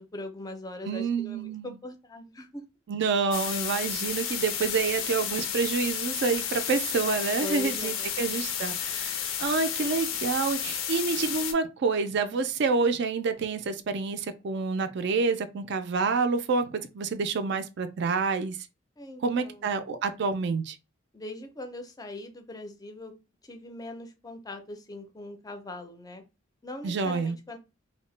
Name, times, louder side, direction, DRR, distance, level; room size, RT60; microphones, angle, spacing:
voice 1, 0.0-2.6 7.4-8.2 19.0-19.7 21.1-23.1 23.4-26.2 26.6-27.6, left 1 dB, 20° left, 0.4 m, -41 dB
voice 2, 0.8-1.8 2.9-18.6 19.2-20.8 26.8-27.4, right 4 dB, 55° right, 0.4 m, -28 dB
sound 1, 3.3-11.5, left 9 dB, 75° left, 0.5 m, -32 dB
2.7 x 2.1 x 3.1 m
head